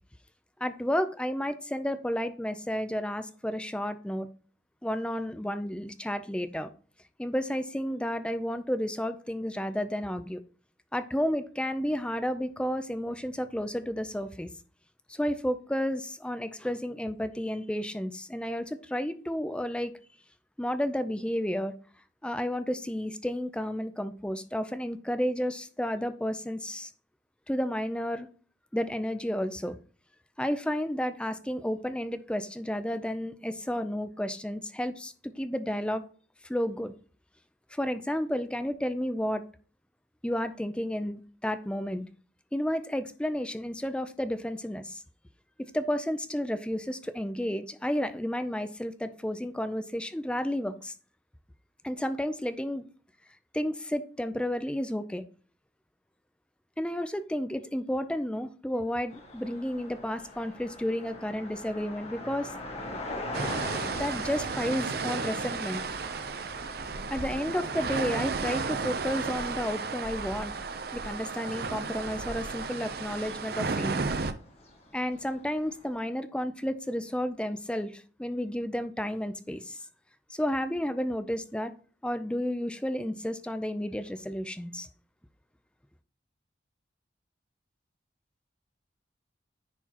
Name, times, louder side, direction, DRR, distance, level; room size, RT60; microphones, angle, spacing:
voice 1, 0.6-4.3 4.8-6.7 7.2-10.4 10.9-14.5 15.1-19.9 20.6-21.7 22.2-26.9 27.5-28.3 28.7-29.8 30.4-36.0 36.4-36.9 37.7-39.4 40.2-42.0 42.5-45.0 45.6-50.9 51.8-52.8 53.5-55.2 56.8-62.5 64.0-65.8 67.1-70.5 70.9-74.0 74.9-79.8 80.3-81.7 82.0-84.9, equal, 5° left, 0.4 m, -32 dB
sound 1, 59.1-75.9, left 1 dB, 35° left, 1.4 m, -44 dB
sound 2, 63.3-74.3, right 4 dB, 55° right, 0.6 m, -33 dB
10.0 x 4.7 x 2.9 m
head